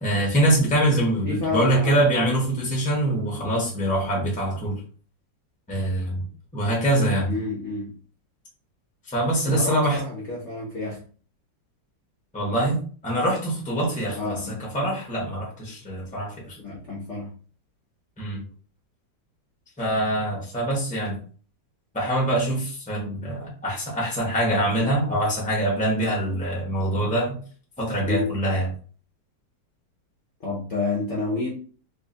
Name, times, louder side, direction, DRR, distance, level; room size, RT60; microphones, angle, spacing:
voice 1, 0.0-4.8 5.7-6.2 6.5-7.3 9.1-10.0 12.3-16.6 18.2-18.4 19.8-21.2 21.9-27.4 27.8-28.7, right 1 dB, 5° left, -3 dB, 0.8 m, -24 dB
voice 2, 1.2-1.9 7.2-7.9 9.5-11.0 14.2-14.6 16.6-17.3 28.0-28.3 30.4-31.5, left 3 dB, 50° left, -4 dB, 0.9 m, -29 dB
3.7 x 3.0 x 2.7 m, 0.41 s
omnidirectional pair, 2.0 m